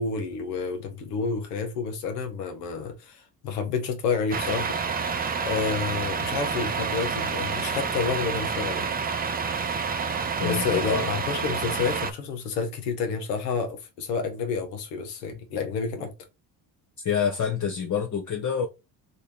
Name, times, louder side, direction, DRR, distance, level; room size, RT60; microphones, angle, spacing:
voice 1, 0.0-4.8 5.4-8.9 10.4-16.1, left 5 dB, 85° left, 1.0 m, -29 dB
Truck, 4.3-12.1, right 5 dB, 20° right, 0.5 m, -28 dB
voice 2, 10.4-11.1 17.0-18.7, left 7 dB, 40° left, 0.7 m, -27 dB
3.2 x 2.7 x 4.2 m
hypercardioid pair, 60°, 48 cm